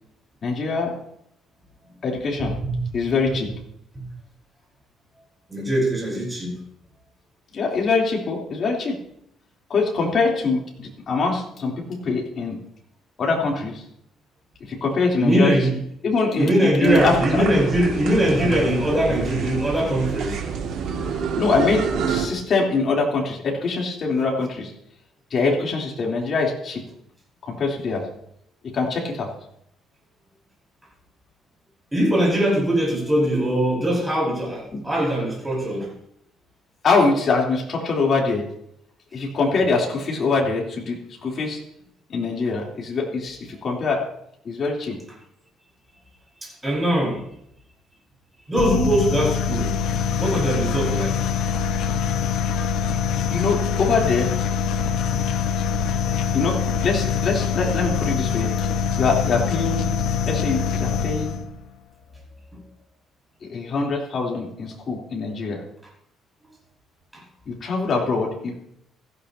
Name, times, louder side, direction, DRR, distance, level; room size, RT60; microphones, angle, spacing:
voice 1, 0.4-1.0 2.0-2.5 2.9-3.5 7.5-9.0 9.7-12.6 13.2-13.8 14.6-15.5 16.0-17.4 21.4-24.7 25.3-26.8 27.4-28.0 28.6-29.3 34.7-34.8 36.8-38.4 39.1-41.6 42.1-44.0 44.4-45.0 53.3-54.3 56.3-58.5 59.0-59.9 60.2-61.4 63.4-65.6 67.4-68.6, left 4 dB, 40° left, -1 dB, 3.4 m, -23 dB
voice 2, 2.6-3.0 5.5-6.6 15.2-15.8 16.4-20.4 31.9-35.9 46.4-47.2 48.5-49.7 50.2-51.2 67.1-67.2, right 1 dB, 10° right, -4 dB, 5.4 m, -21 dB
sound 1, 16.9-22.3, right 6 dB, 70° right, 2.2 m, -28 dB
sound 2, 48.5-61.5, left 7 dB, 80° left, 1.2 m, -24 dB
16.0 x 15.0 x 2.8 m, 0.73 s
cardioid pair, 155°, 0 cm